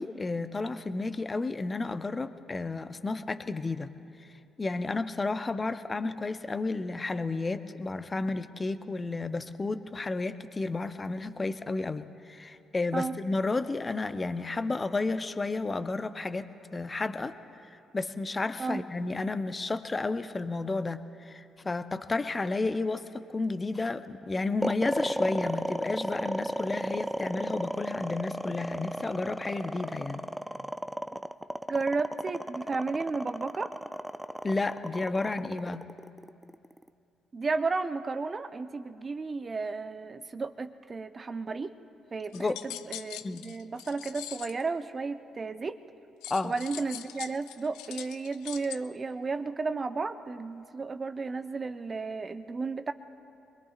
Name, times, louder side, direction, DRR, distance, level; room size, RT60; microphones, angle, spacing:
voice 1, 0.0-3.9 4.6-17.3 17.9-30.3 34.4-35.8 42.3-42.6 43.2-43.4 46.3-46.5, left 3 dB, 30° left, 10 dB, 0.8 m, -32 dB
sound 1, 24.6-36.9, right 1 dB, 5° right, 0.5 m, -34 dB
voice 2, 31.7-33.7 37.3-41.7 42.1-45.8 46.4-52.9, right 4 dB, 35° right, 10 dB, 0.8 m, -33 dB
sound 2, 42.3-44.6 46.2-48.8, left 13 dB, 75° left, 0.4 m, -42 dB
26.0 x 21.5 x 2.5 m, 2.8 s
hypercardioid pair, 45°, 0 cm